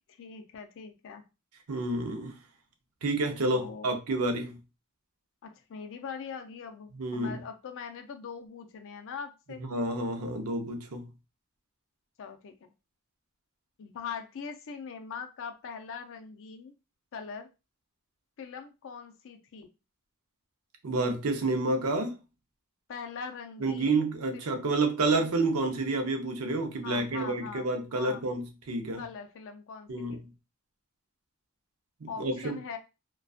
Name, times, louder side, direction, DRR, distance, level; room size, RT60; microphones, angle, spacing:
voice 1, 0.1-1.2 3.5-4.0 5.4-9.6 12.2-12.5 13.8-16.7 17.1-17.5 18.4-19.7 22.9-24.0 24.3-24.4 26.8-28.2 29.0-30.2 32.1-32.8, left 6 dB, 60° left, 0.4 m, -42 dB
voice 2, 1.7-2.4 3.0-4.6 7.0-7.4 9.6-11.1 20.8-22.1 23.6-29.0 29.9-30.2 32.0-32.6, right 2 dB, 70° right, 0.6 m, -29 dB
2.5 x 2.2 x 2.4 m
head